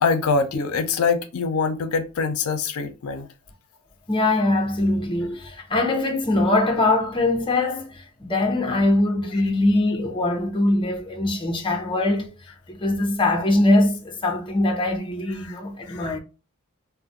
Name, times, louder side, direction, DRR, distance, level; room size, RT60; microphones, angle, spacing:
voice 1, 0.0-3.3 15.4-15.6 15.8-16.1, left 5 dB, 80° left, 0.4 m, -24 dB
voice 2, 4.1-12.3 12.7-16.2, left 2 dB, 25° left, 0.6 m, -22 dB
2.4 x 2.1 x 3.9 m
head